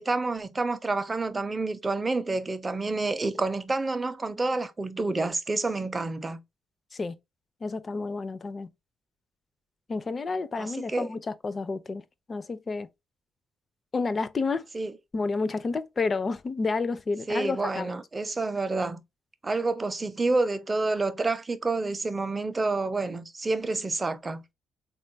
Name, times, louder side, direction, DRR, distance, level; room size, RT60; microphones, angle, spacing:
voice 1, 0.0-6.4 10.6-11.1 14.7-14.9 17.3-19.0 19.4-24.4, right 3 dB, 25° right, 0.5 m, -28 dB
voice 2, 7.6-8.7 9.9-12.0 12.3-12.9 13.9-14.6 15.1-18.0, left 4 dB, 35° left, 0.4 m, -30 dB
3.6 x 2.3 x 2.6 m
cardioid pair, 90°, 0 cm